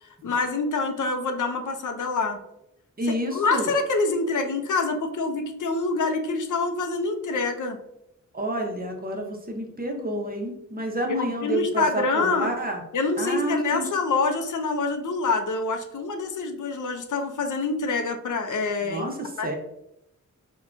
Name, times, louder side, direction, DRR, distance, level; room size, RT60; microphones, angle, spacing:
voice 1, 0.0-2.4 3.3-7.8 11.2-12.5 12.9-19.1 19.4-19.5, left 3 dB, 65° left, 6 dB, 0.5 m, -26 dB
voice 2, 3.0-3.7 8.3-12.8 13.2-13.9 18.8-19.5, right 1 dB, 30° right, 2 dB, 0.6 m, -29 dB
3.6 x 2.2 x 2.4 m, 0.82 s
cardioid pair, 50°, 32 cm